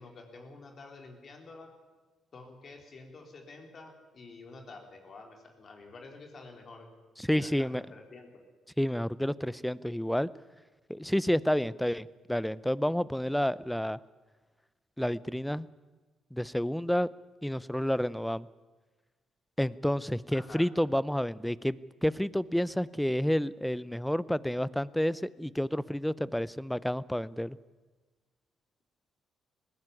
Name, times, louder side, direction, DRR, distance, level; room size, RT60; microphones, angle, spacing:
voice 1, 0.0-1.7 2.3-6.9 7.3-8.3 20.3-20.6, left 3 dB, 45° left, 3 dB, 4.1 m, -49 dB
voice 2, 7.2-7.8 8.8-10.3 10.9-14.0 15.0-15.7 16.3-17.1 17.4-18.5 19.6-27.6, equal, 5° left, 20 dB, 0.6 m, -30 dB
20.0 x 16.0 x 9.7 m, 1.3 s
cardioid pair, 90°, 0 cm